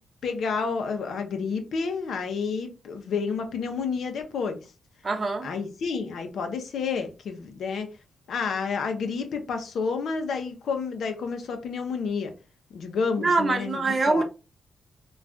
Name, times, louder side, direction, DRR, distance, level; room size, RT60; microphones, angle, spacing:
voice 1, 0.2-4.6 5.4-7.9 8.3-12.3 12.7-14.2, left 5 dB, 75° left, 0.6 m, -30 dB
voice 2, 5.0-5.5 13.2-14.2, right 3 dB, 40° right, 0.7 m, -24 dB
2.5 x 2.3 x 3.3 m
cardioid pair, 75°, 0 cm